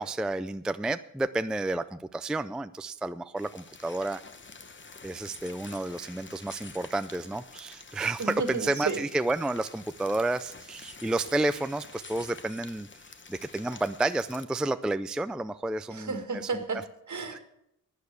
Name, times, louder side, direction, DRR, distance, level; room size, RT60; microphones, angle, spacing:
voice 1, 0.0-4.2 5.0-12.9 13.3-16.2 16.5-16.6 17.3-17.4, right 2 dB, ahead, 12 dB, 0.4 m, -31 dB
sound 1, 3.4-14.4, left 4 dB, 35° left, 1.0 m, -48 dB
voice 2, 8.2-9.0 15.9-17.4, right 4 dB, 60° right, 7 dB, 1.7 m, -32 dB
11.5 x 9.4 x 6.7 m, 0.78 s
wide cardioid pair, 110°, 33 cm